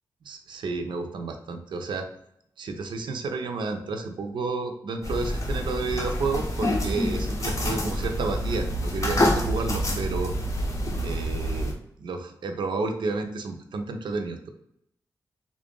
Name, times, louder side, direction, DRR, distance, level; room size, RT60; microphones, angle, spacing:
voice 1, 0.2-2.1 2.6-10.3 11.0-14.5, right 3 dB, 80° right, 6 dB, 0.5 m, -31 dB
sound 1, 5.0-11.7, equal, 40° left, 0.8 m, -27 dB
3.5 x 2.5 x 3.7 m, 0.75 s
cardioid pair, 85°, 8 cm